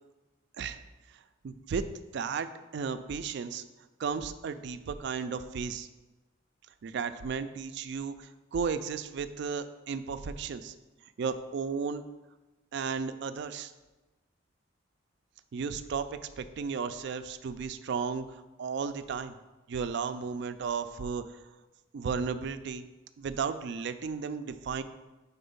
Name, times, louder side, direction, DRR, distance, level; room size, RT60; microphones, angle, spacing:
voice 1, 1.4-1.9 2.1-3.6 4.0-5.9 6.8-10.7 11.2-12.0 12.7-13.7 15.5-19.4 19.7-21.4 21.9-22.9 23.2-24.8, right 5 dB, 55° right, 11 dB, 0.3 m, -34 dB
4.3 x 4.2 x 5.3 m, 1.1 s
head